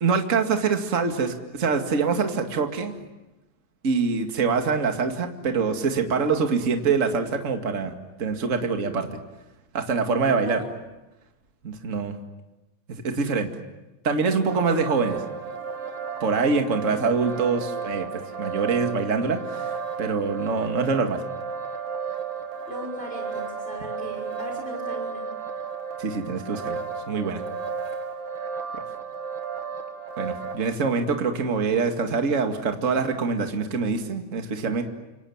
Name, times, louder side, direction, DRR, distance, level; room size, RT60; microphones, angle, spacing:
voice 1, 0.0-2.9 3.8-7.9 8.2-9.1 9.7-10.6 11.6-12.2 12.9-13.5 14.0-15.2 16.2-21.2 26.0-27.4 28.7-28.8 30.2-34.8, right 5 dB, 30° right, 5 dB, 2.1 m, -25 dB
voice 2, 10.4-10.7 16.9-17.3 22.7-25.2, equal, 15° left, 1 dB, 6.2 m, -38 dB
sound 1, 14.5-30.6, right 5 dB, 55° right, 3.0 m, -33 dB
29.5 x 27.0 x 7.3 m, 1.0 s
omnidirectional pair, 3.4 m